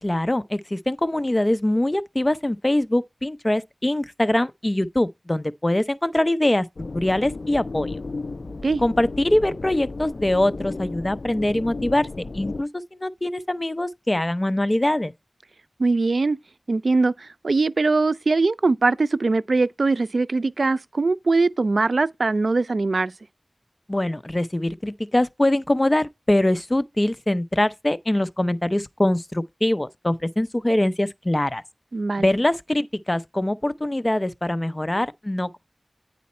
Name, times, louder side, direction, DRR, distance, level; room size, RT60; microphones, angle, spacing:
voice 1, 0.0-6.6 6.9-8.0 8.8-12.1 12.3-15.1 23.9-31.6 32.2-35.6, left 1 dB, 30° left, 0.6 m, -23 dB
sound 1, 6.8-12.6, left 3 dB, 80° left, 0.4 m, -34 dB
voice 2, 15.8-16.4 16.7-23.1 31.9-32.3, right 3 dB, 85° right, 0.3 m, -21 dB
9.5 x 4.1 x 4.2 m
wide cardioid pair, 55°, 0 cm